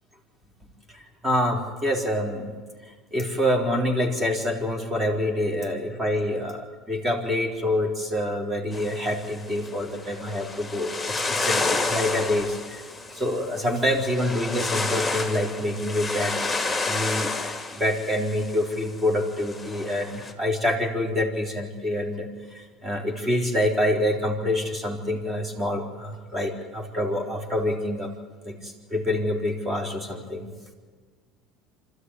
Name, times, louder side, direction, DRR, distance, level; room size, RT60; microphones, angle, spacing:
voice 1, 0.9-2.5 2.9-12.8 13.1-16.4 16.6-28.1 28.4-30.5, left 1 dB, 20° right, 3 dB, 4.5 m, -26 dB
sound 1, 8.7-20.3, left 3 dB, 5° left, 2.8 m, -31 dB
26.0 x 13.5 x 10.0 m, 1.5 s
supercardioid pair, 90°, 0 cm